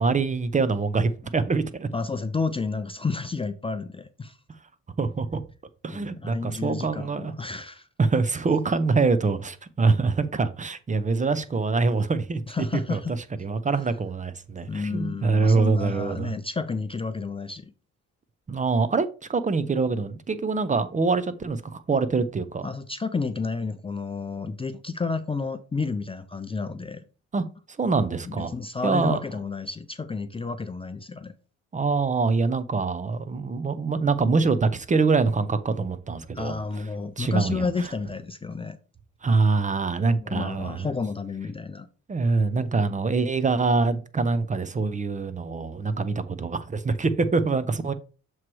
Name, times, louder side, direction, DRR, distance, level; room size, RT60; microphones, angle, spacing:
voice 1, 0.0-1.9 5.0-5.4 5.8-7.3 8.0-12.4 12.9-13.0 13.4-16.3 18.5-22.7 27.3-27.4 27.8-28.5 28.8-29.2 31.7-36.8 37.2-37.7 39.2-40.9 42.1-47.9, right 4 dB, 25° right, 0.6 m, -24 dB
voice 2, 1.9-4.4 5.9-7.9 12.5-13.1 14.6-17.7 22.6-27.0 28.2-31.3 36.3-38.8 40.2-41.9, left 4 dB, 20° left, 0.4 m, -31 dB
7.3 x 3.1 x 4.6 m
cardioid pair, 90°, 30 cm